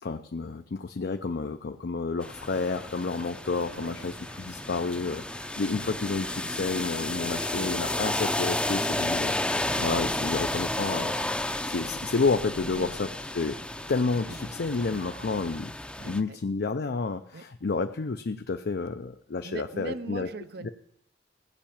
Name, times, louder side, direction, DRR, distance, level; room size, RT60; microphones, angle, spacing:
voice 1, 0.0-9.4 9.8-13.1 13.3-13.6 13.9-15.7 16.0-20.3 20.6-20.7, left 4 dB, 60° left, 7 dB, 0.5 m, -30 dB
sound 1, 2.2-16.2, left 1 dB, 5° left, 0.6 m, -32 dB
sound 2, 2.6-15.6, right 2 dB, 90° right, 1.3 m, -49 dB
voice 2, 3.7-4.0 10.1-10.4 12.6-13.0 16.0-16.4 17.3-17.4 19.4-20.7, right 3 dB, 65° right, 12 dB, 0.6 m, -40 dB
16.5 x 5.7 x 8.7 m, 0.76 s
head